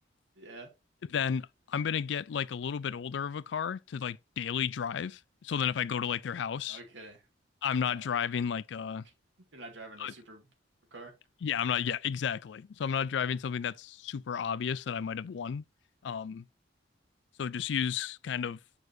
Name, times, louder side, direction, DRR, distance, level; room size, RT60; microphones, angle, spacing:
voice 1, 0.4-0.7 6.7-7.2 7.9-8.1 9.5-10.4 10.9-11.1, right 2 dB, 75° right, 2.0 m, -47 dB
voice 2, 1.1-6.8 7.6-9.0 10.0-10.1 11.4-15.6 16.0-16.4 17.4-18.6, left 7 dB, 70° left, 0.4 m, -32 dB
6.8 x 6.2 x 2.7 m
head